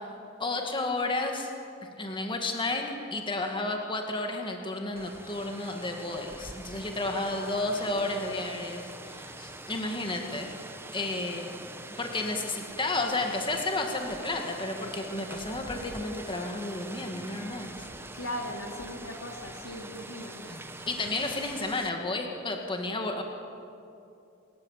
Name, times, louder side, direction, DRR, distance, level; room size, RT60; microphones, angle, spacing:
voice 1, 0.4-1.5 2.0-10.6 10.9-11.5 12.0-17.9 20.5-20.6 20.9-23.2, left 2 dB, 25° left, 3 dB, 2.1 m, -32 dB
Rain, 5.0-21.9, right 2 dB, 10° right, 1.2 m, -44 dB
voice 2, 7.1-8.5 18.1-20.4, left 1 dB, 80° left, 3 dB, 3.1 m, -39 dB
28.0 x 14.5 x 9.0 m, 2.6 s
head